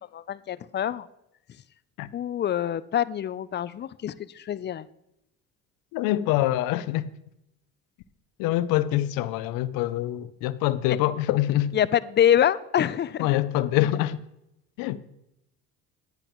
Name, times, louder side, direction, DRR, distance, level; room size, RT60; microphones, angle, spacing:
voice 1, 0.1-1.1 2.1-4.9 10.9-11.0 11.7-13.4, left 10 dB, 35° left, 0.4 m, -25 dB
voice 2, 5.9-7.1 8.4-11.7 13.2-14.2 14.8-15.0, left 14 dB, 85° left, 0.6 m, -25 dB
10.5 x 9.9 x 3.0 m
supercardioid pair, 85°, 34 cm